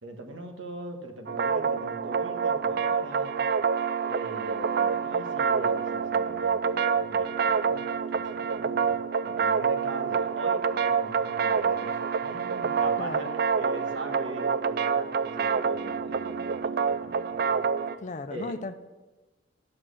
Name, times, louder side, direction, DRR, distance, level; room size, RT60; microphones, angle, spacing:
voice 1, 0.0-3.4 4.1-17.7 18.3-18.5, right 2 dB, 80° right, 4 dB, 1.4 m, -41 dB
sound 1, 1.3-18.0, right 6 dB, 50° right, 0.4 m, -27 dB
voice 2, 13.0-13.4 18.0-18.7, left 3 dB, 40° left, 9 dB, 0.6 m, -36 dB
11.5 x 6.2 x 6.3 m, 1.2 s
head